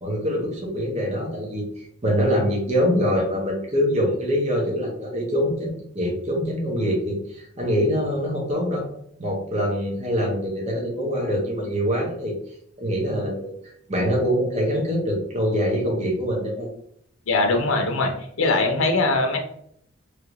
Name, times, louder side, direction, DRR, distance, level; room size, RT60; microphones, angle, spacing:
voice 1, 0.0-8.9 9.2-12.3 12.8-13.5 13.9-16.7, equal, 30° right, -2 dB, 0.7 m, -24 dB
voice 2, 17.3-18.1 18.4-19.4, left 3 dB, 85° left, 3 dB, 0.6 m, -21 dB
3.1 x 2.5 x 3.0 m, 0.67 s
head